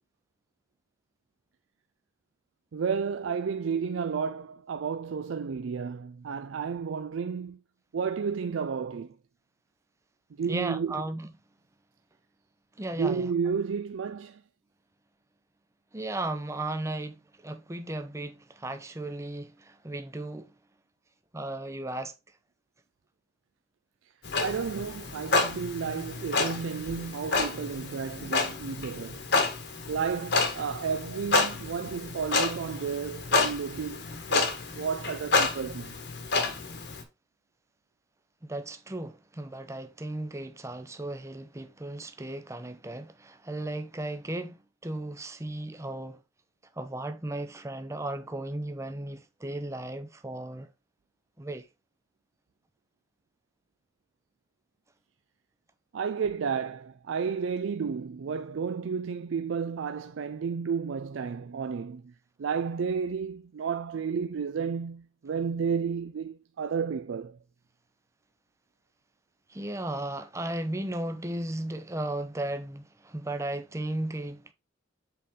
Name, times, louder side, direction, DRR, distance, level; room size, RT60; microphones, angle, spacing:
voice 1, 2.7-7.6 7.9-9.1 10.4-11.0 13.0-14.4 24.4-29.2 29.9-35.9 55.9-62.1 62.4-67.4, right 6 dB, 75° right, 0.4 m, -32 dB
voice 2, 10.5-11.3 12.8-13.3 15.9-17.2 17.4-20.5 21.3-22.1 38.4-46.2 46.8-50.7 51.4-51.6 69.5-74.5, right 1 dB, 15° right, 0.6 m, -35 dB
Clock, 24.2-37.0, left 3 dB, 55° left, 1.4 m, -29 dB
7.7 x 4.2 x 3.6 m
head